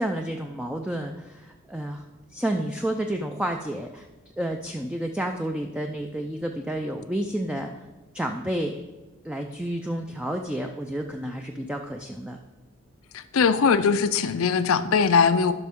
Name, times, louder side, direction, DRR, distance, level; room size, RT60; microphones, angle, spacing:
voice 1, 0.0-2.0 2.3-4.1 4.4-7.8 8.1-8.8 9.2-12.4, right 1 dB, 5° right, 3 dB, 0.4 m, -30 dB
voice 2, 13.1-15.5, left 5 dB, 90° left, 12 dB, 0.5 m, -21 dB
12.0 x 6.0 x 3.6 m, 1.2 s
head